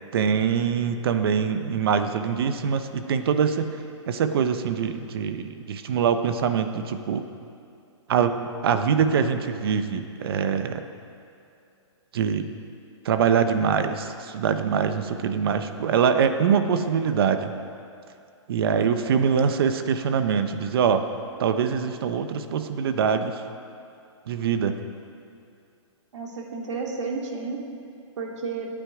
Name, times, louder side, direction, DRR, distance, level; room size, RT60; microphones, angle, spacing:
voice 1, 0.1-3.7 4.1-7.2 8.1-8.4 8.6-10.8 12.1-12.5 13.0-17.5 18.5-21.0 21.4-23.4 24.3-24.7, right 7 dB, 50° right, 8 dB, 1.0 m, -23 dB
voice 2, 26.1-27.6 28.2-28.7, right 4 dB, 65° right, 0 dB, 2.6 m, -31 dB
24.0 x 9.0 x 4.9 m, 2.5 s
hypercardioid pair, 160°, 16 cm